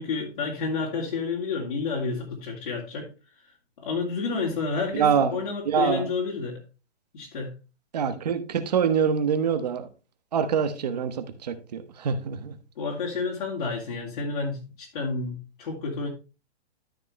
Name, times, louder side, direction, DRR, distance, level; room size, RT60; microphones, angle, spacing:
voice 1, 0.0-3.1 3.8-6.6 7.1-7.5 12.8-16.1, left 4 dB, 50° left, 2.6 m, -30 dB
voice 2, 4.9-5.4 5.6-6.1 7.9-9.9 10.3-12.5, right 7 dB, 40° right, 1.2 m, -25 dB
13.0 x 5.4 x 3.2 m
hypercardioid pair, 175°, 33 cm